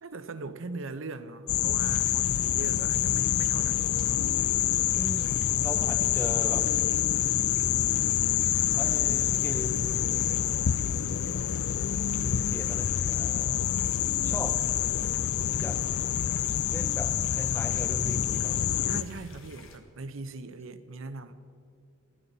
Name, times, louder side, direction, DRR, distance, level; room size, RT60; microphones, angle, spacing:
voice 1, 0.0-3.8 18.8-21.3, right 3 dB, 65° right, 0.8 m, -40 dB
sound 1, 1.5-19.0, left 10 dB, 85° left, 0.5 m, -27 dB
sound 2, 1.7-19.8, left 5 dB, 65° left, 1.6 m, -53 dB
voice 2, 4.9-6.8 8.7-10.0 12.1-13.7 14.2-14.7 15.6-15.9 16.7-18.6, left 1 dB, 10° left, 0.7 m, -38 dB
20.0 x 13.5 x 4.1 m
head